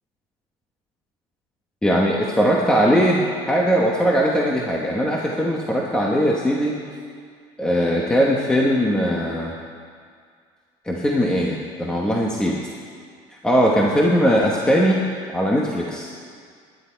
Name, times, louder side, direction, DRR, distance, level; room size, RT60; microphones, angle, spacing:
voice 1, 1.8-6.8 7.6-9.5 10.8-12.6 13.4-15.1 15.3-16.1, equal, 5° left, -2 dB, 1.0 m, -20 dB
22.0 x 10.5 x 4.5 m, 2.1 s
cardioid pair, 165°, 12 cm